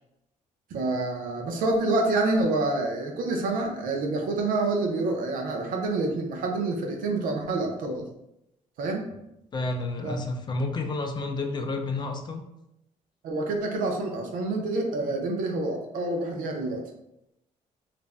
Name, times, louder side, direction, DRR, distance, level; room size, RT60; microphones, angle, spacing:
voice 1, 0.7-8.1 8.8-9.1 10.0-10.1 13.2-16.8, right 2 dB, 85° right, 3 dB, 0.5 m, -27 dB
voice 2, 9.5-12.4, left 2 dB, 30° left, 4 dB, 0.3 m, -30 dB
2.5 x 2.1 x 3.3 m, 0.84 s
cardioid pair, 130°, 14 cm